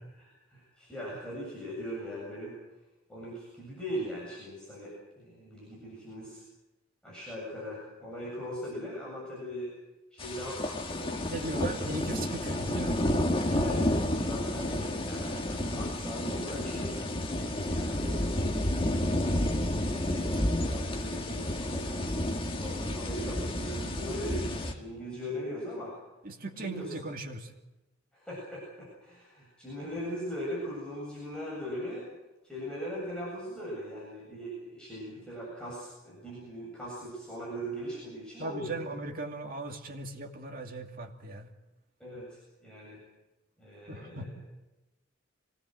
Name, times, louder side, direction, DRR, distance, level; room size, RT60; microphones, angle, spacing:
voice 1, 0.2-2.6 3.1-6.4 7.0-9.7 10.1-11.8 13.6-19.0 19.7-20.3 20.6-25.9 26.6-26.9 28.1-32.1 32.4-38.8 42.0-43.0 43.6-44.4, equal, 5° left, -6 dB, 7.7 m, -40 dB
sound 1, 10.2-24.7, left 1 dB, 25° left, 1.8 m, -31 dB
voice 2, 11.3-13.7 26.2-27.5 38.4-41.5 43.9-44.3, right 2 dB, 45° right, 3 dB, 2.5 m, -38 dB
25.0 x 19.0 x 7.8 m, 1.0 s
head